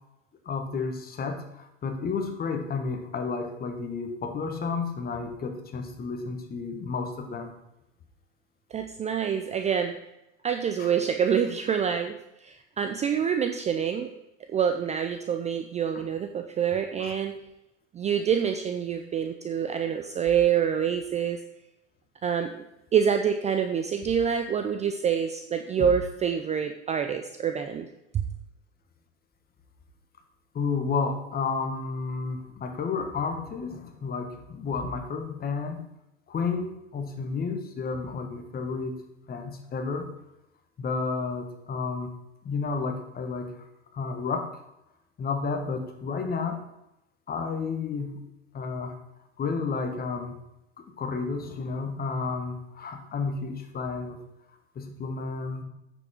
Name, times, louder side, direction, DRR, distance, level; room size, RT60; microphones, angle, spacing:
voice 1, 0.4-7.5 10.8-10.9 17.0-17.1 30.5-35.8 36.3-39.0 39.3-40.1 40.8-42.1 42.4-43.7 43.9-44.5 45.2-46.6 47.3-48.2 48.5-49.0 49.4-50.4 51.0-54.2 54.7-55.6, left 4 dB, 25° left, 5 dB, 1.5 m, -31 dB
voice 2, 8.7-9.9 10.4-14.1 14.5-17.4 17.9-21.4 22.2-22.5 22.9-28.2, right 8 dB, 20° right, 6 dB, 0.5 m, -26 dB
8.5 x 7.2 x 4.4 m, 0.88 s
hypercardioid pair, 100°, 37 cm